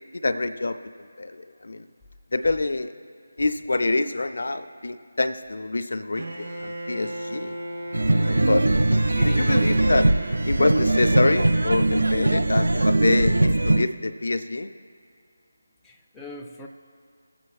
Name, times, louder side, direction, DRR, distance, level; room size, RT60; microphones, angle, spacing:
voice 1, 0.1-0.8 1.2-1.8 2.3-2.9 3.4-7.6 8.1-8.6 9.2-10.1 10.4-14.7, left 2 dB, 70° left, 10 dB, 0.4 m, -26 dB
Bowed string instrument, 6.2-13.1, right 1 dB, 55° right, 1.9 m, -37 dB
sound 1, 7.9-13.8, right 2 dB, 80° right, 0.4 m, -21 dB
voice 2, 8.9-9.7 15.8-16.7, left 2 dB, 5° left, -1 dB, 0.4 m, -40 dB
20.0 x 7.6 x 2.3 m, 2.3 s
figure-of-eight pair, 160°, 0 cm